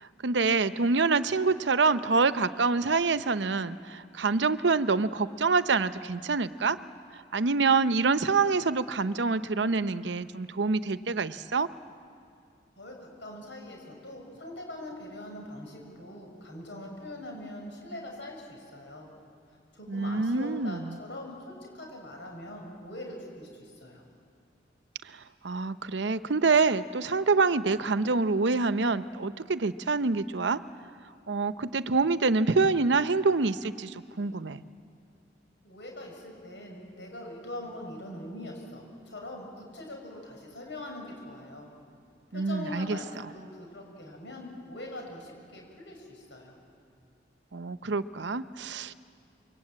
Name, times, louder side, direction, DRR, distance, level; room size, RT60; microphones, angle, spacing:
voice 1, 0.0-6.8 7.1-11.7 19.9-21.0 25.4-30.6 31.3-34.6 42.3-43.0 47.5-48.9, right 4 dB, 80° right, 13 dB, 0.8 m, -26 dB
voice 2, 12.7-19.1 19.7-24.0 35.6-41.7 42.3-46.6, left 1 dB, 85° left, 1 dB, 6.6 m, -42 dB
27.5 x 23.0 x 8.9 m, 2.4 s
head